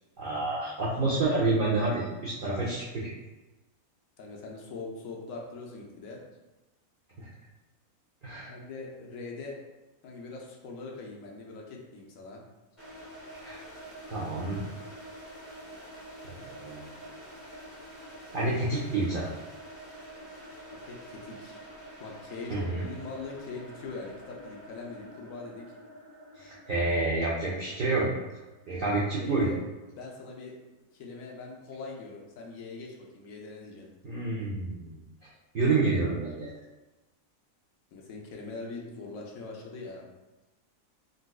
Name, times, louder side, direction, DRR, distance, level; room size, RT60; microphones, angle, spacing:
voice 1, 0.2-3.1 7.2-7.3 8.2-8.5 13.4-13.6 14.1-14.6 16.2-16.9 18.3-19.3 22.5-22.8 26.4-28.1 28.7-29.5 34.0-35.3 35.5-36.5, right 3 dB, 65° right, -7 dB, 0.5 m, -29 dB
voice 2, 4.2-6.2 8.4-9.6 10.0-12.4 20.9-21.6 22.0-25.7 29.2-29.6 29.9-30.5 30.9-33.9 37.9-40.0, left 3 dB, 75° left, -1 dB, 1.0 m, -42 dB
sound 1, 12.8-29.6, right 1 dB, 25° left, 1.1 m, -47 dB
3.8 x 2.3 x 2.3 m, 1.1 s
omnidirectional pair, 1.5 m